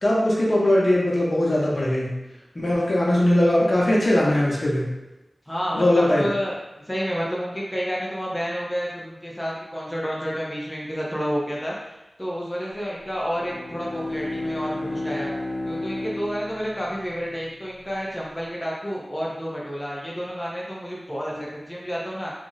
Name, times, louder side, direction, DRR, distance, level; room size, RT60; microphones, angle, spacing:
voice 1, 0.0-2.1 2.5-4.9 5.7-6.3, left 1 dB, 50° left, -5 dB, 0.8 m, -20 dB
voice 2, 5.5-15.3 15.6-22.3, equal, 10° left, -5 dB, 0.5 m, -30 dB
Bowed string instrument, 13.2-17.8, left 2 dB, 10° right, 0.9 m, -32 dB
2.5 x 2.0 x 3.8 m, 1.0 s
wide cardioid pair, 60°, 0 cm